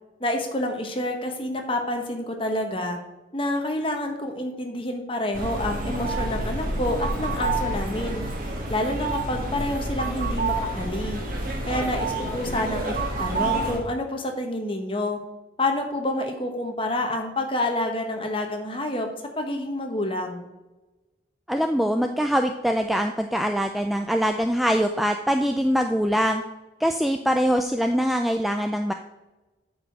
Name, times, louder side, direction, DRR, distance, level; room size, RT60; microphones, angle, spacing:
voice 1, 0.2-3.0 3.3-8.2 8.7-11.2 11.7-15.2 15.6-19.1 19.4-20.5, left 1 dB, 30° left, 4 dB, 1.2 m, -28 dB
sound 1, 5.3-13.8, right 2 dB, 45° right, 1.8 m, -28 dB
voice 2, 21.5-26.4 26.8-28.9, equal, ahead, 5 dB, 0.3 m, -23 dB
8.6 x 4.8 x 6.6 m, 1.1 s
head